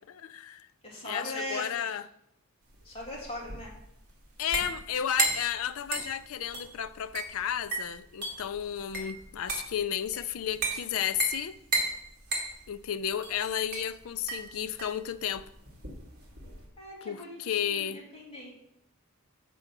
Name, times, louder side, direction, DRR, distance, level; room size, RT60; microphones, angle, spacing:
voice 1, 0.1-0.7 1.0-2.1 4.4-11.6 12.7-15.5 17.0-18.0, left 9 dB, 65° left, 0.4 m, -33 dB
voice 2, 0.8-1.7 2.8-3.7 16.8-18.5, equal, 25° left, 2.3 m, -40 dB
sound 1, 2.7-16.7, right 3 dB, 45° right, 1.7 m, -35 dB
7.7 x 4.5 x 5.9 m
head